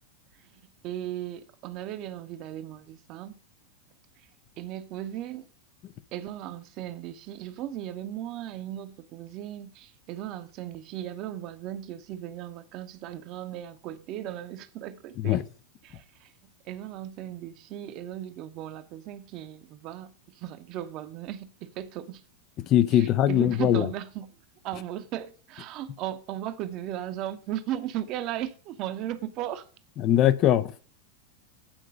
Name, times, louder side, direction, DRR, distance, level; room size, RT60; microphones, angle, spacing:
voice 1, 0.8-3.4 4.6-5.5 6.1-15.4 15.8-16.3 16.6-22.2 22.9-24.3 24.6-29.7, right 12 dB, 40° right, 0.8 m, -36 dB
voice 2, 22.7-23.9 30.0-30.8, left 11 dB, 35° left, 0.5 m, -21 dB
8.9 x 4.8 x 6.3 m
figure-of-eight pair, 90°, 0 cm